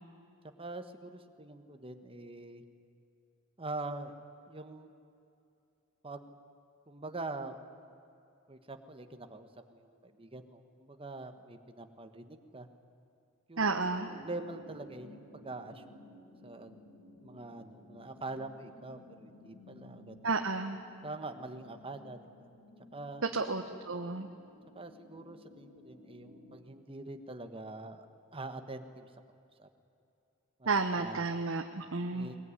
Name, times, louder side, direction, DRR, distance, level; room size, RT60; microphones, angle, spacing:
voice 1, 0.6-2.6 3.6-4.1 4.5-4.9 6.0-6.3 6.9-7.6 8.5-12.7 13.5-13.9 14.2-16.0 16.4-16.7 17.2-20.2 21.0-22.5 22.9-23.2 24.7-28.1 28.3-29.1 29.6-29.7 30.6-31.2 32.1-32.4, right 2 dB, 25° right, 7 dB, 1.4 m, -44 dB
voice 2, 13.6-14.1 20.2-20.8 23.3-24.3 30.6-32.3, right 3 dB, 75° right, 5 dB, 1.1 m, -32 dB
sound 1, 13.9-26.6, left 1 dB, 85° left, 5.9 m, -56 dB
21.5 x 21.0 x 9.9 m, 2.6 s
head